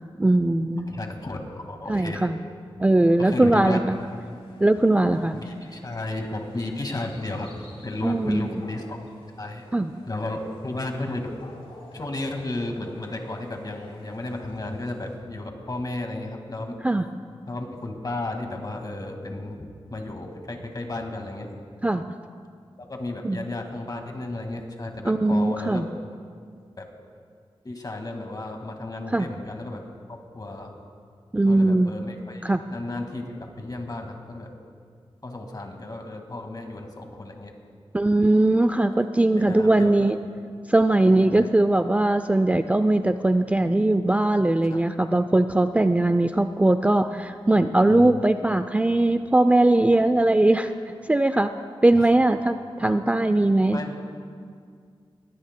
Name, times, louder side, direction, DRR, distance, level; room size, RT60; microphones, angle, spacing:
voice 1, 0.2-0.9 1.9-2.4 2.8-4.0 4.6-5.4 8.0-8.6 9.7-9.9 16.8-17.0 21.8-22.1 23.2-23.5 25.0-25.9 29.1-29.3 31.3-31.9 32.4-32.6 37.9-40.2 40.7-50.7 51.1-51.5 51.8-53.8, right 2 dB, 15° right, 9 dB, 0.4 m, -20 dB
voice 2, 0.9-2.3 3.2-3.8 5.3-7.5 7.8-9.0 9.4-9.6 10.1-11.3 11.9-16.7 17.5-21.5 22.8-25.8 26.8-26.9 27.6-29.8 30.1-30.7 31.4-34.5 35.2-37.5 39.4-40.1 41.3-41.5 44.7-44.8 47.9-48.2 51.9-52.1 52.8-52.9 53.7-53.9, left 2 dB, 40° left, 3 dB, 1.8 m, -33 dB
sound 1, 3.9-15.2, left 1 dB, 70° left, 2.7 m, -49 dB
20.5 x 17.5 x 2.2 m, 2.2 s
wide cardioid pair, 80°, 10 cm